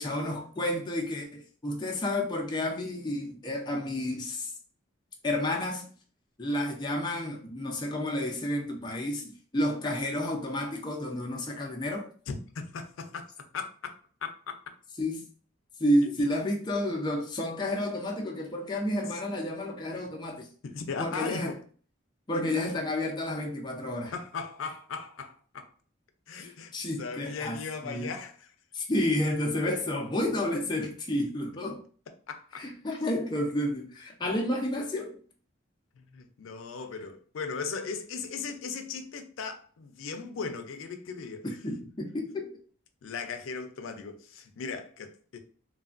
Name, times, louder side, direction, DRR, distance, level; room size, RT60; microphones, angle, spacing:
voice 1, 0.0-4.5 5.2-5.8 6.4-12.1 15.0-15.2 15.8-20.5 21.0-21.5 22.3-24.1 26.3-28.1 28.7-31.8 32.6-35.2 41.4-42.5, left 1 dB, 20° left, 0.4 m, -31 dB
voice 2, 12.3-13.9 14.2-14.6 16.0-16.1 19.1-19.2 20.6-21.6 22.3-22.6 24.1-25.7 26.3-26.7 27.0-28.5 32.3-32.6 35.9-41.5 43.0-45.4, left 5 dB, 85° left, 0.4 m, -37 dB
3.2 x 2.2 x 2.4 m
head